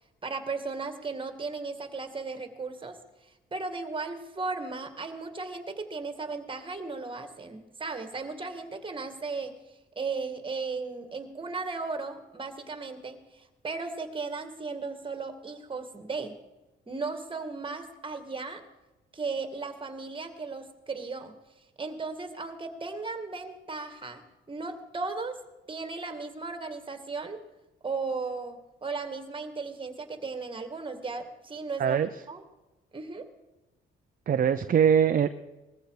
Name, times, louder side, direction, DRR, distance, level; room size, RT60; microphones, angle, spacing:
voice 1, 0.2-3.0 3.5-9.6 10.0-16.4 16.9-18.6 19.1-21.4 21.8-24.2 24.5-25.4 25.7-27.4 27.8-32.0 32.3-32.4 32.9-33.3, right 4 dB, 25° right, 8 dB, 2.1 m, -36 dB
voice 2, 34.3-35.3, right 8 dB, 45° right, 9 dB, 0.7 m, -22 dB
20.0 x 14.5 x 4.9 m, 1.1 s
cardioid pair, 90°, 20 cm